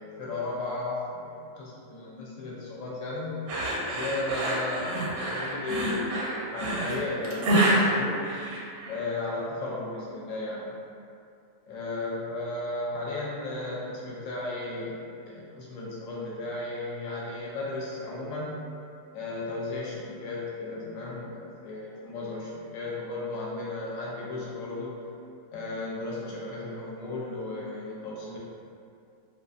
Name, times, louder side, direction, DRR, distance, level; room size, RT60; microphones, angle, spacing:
voice 1, 0.0-3.4 3.8-5.0 5.3-6.1 6.5-8.2 8.9-10.8 11.7-15.0 15.2-18.6 19.1-25.0 25.5-28.4, left 2 dB, 75° left, -5 dB, 1.0 m, -35 dB
sound 1, 3.5-9.0, right 1 dB, 80° right, 1.0 m, -27 dB
2.5 x 2.5 x 2.4 m, 2.5 s
omnidirectional pair, 1.5 m